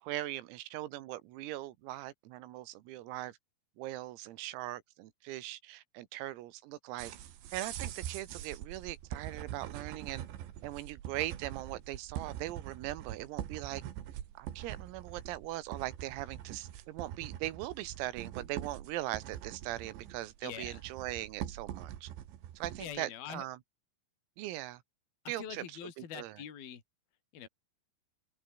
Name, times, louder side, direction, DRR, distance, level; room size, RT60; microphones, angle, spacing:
voice 1, 0.0-3.4 3.8-7.1 7.5-10.3 10.6-13.8 14.4-22.1 22.6-23.6 24.4-24.8 25.3-25.6 26.0-26.3, right 16 dB, 90° right, 4.2 m, -40 dB
sound 1, 7.0-23.0, right 11 dB, 65° right, 4.0 m, -44 dB
voice 2, 20.4-20.8 22.8-23.5 25.4-26.8 27.3-27.5, left 9 dB, 50° left, 5.1 m, -44 dB
open air
omnidirectional pair, 5.9 m